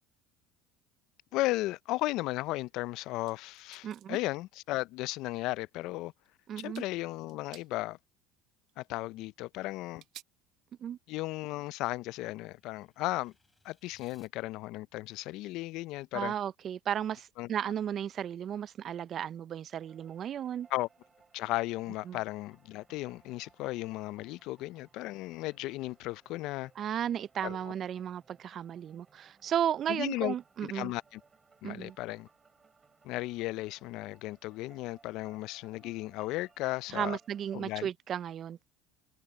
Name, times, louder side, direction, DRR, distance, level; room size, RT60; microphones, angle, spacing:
voice 1, 1.3-6.1 6.6-8.0 8.8-10.0 11.1-13.3 13.6-16.3 17.4-17.5 20.7-20.9 21.3-26.7 27.4-27.7 29.9-30.3 30.6-31.2 31.6-32.3 33.0-37.2 37.5-37.9, left 18 dB, 65° left, 0.4 m, -35 dB
sound 1, 3.3-4.2 5.5-5.6 6.1-6.3 6.6-6.9 7.2-7.7 8.7-8.8 10.0-10.2, right 15 dB, 60° right, 1.8 m, -53 dB
voice 2, 3.8-4.2 6.5-6.8 10.8-11.0 16.1-20.7 22.1-22.2 26.8-30.9 31.6-32.0 36.9-38.6, right 9 dB, 45° right, 0.4 m, -34 dB
sound 2, 10.7-14.3, left 3 dB, 15° left, 6.2 m, -70 dB
sound 3, 19.8-37.9, right 5 dB, 25° right, 4.0 m, -65 dB
supercardioid pair, 100°, 0 cm